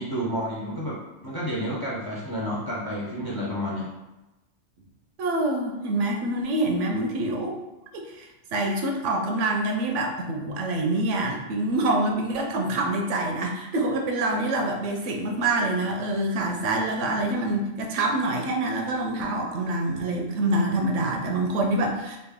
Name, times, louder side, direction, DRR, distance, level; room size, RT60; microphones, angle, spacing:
voice 1, 0.0-3.9, equal, 30° left, -5 dB, 0.4 m, -30 dB
voice 2, 5.2-7.6 8.1-22.2, right 2 dB, 85° right, 2 dB, 0.9 m, -26 dB
3.2 x 2.4 x 3.5 m, 1.0 s
omnidirectional pair, 1.2 m